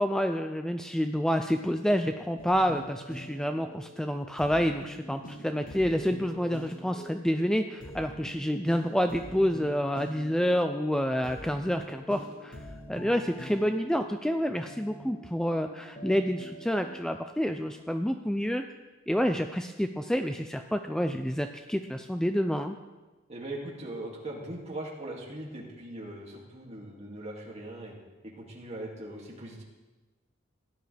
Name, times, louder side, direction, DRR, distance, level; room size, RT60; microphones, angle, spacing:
voice 1, 0.0-18.6 19.1-22.7, equal, 5° left, 6 dB, 0.4 m, -28 dB
sound 1, 2.4-17.0, equal, 45° left, 1.7 m, -45 dB
voice 2, 23.3-27.9 28.2-29.6, right 1 dB, 35° right, -2 dB, 2.4 m, -40 dB
17.0 x 10.5 x 3.4 m, 1.2 s
head